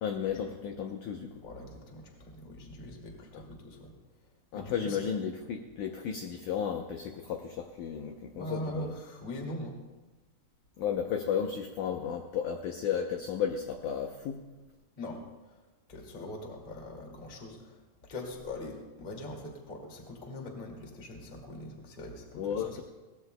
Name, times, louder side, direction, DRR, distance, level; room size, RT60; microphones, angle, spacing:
voice 1, 0.0-1.3 4.5-8.9 10.8-14.4 22.3-22.8, left 8 dB, 75° left, 4 dB, 1.9 m, -33 dB
voice 2, 1.4-3.9 4.5-5.0 8.3-9.8 15.0-15.6 15.9-22.8, left 1 dB, 20° left, 1 dB, 1.3 m, -42 dB
21.5 x 18.0 x 2.2 m, 1.2 s
omnidirectional pair, 4.4 m